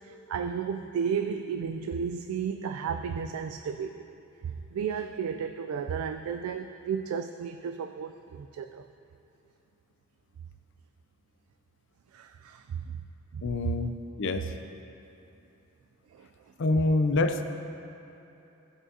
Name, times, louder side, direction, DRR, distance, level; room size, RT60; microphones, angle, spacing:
voice 1, 0.0-4.0 4.7-8.9 12.1-12.8 13.3-13.4 16.2-16.3, right 6 dB, 85° right, 6 dB, 0.3 m, -33 dB
voice 2, 13.4-13.9 14.2-14.5 16.6-17.4, left 2 dB, 60° left, 8 dB, 0.5 m, -26 dB
15.0 x 5.5 x 2.7 m, 3.0 s
head